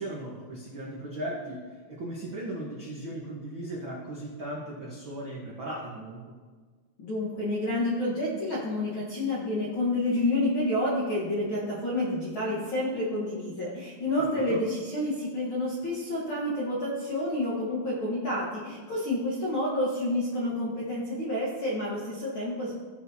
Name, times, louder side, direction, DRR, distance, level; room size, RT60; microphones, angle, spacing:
voice 1, 0.0-6.3 14.4-14.6, right 1 dB, 70° right, -4 dB, 1.1 m, -37 dB
voice 2, 7.0-22.7, left 1 dB, 60° left, -6 dB, 1.4 m, -29 dB
16.5 x 6.2 x 2.8 m, 1.5 s
omnidirectional pair, 4.2 m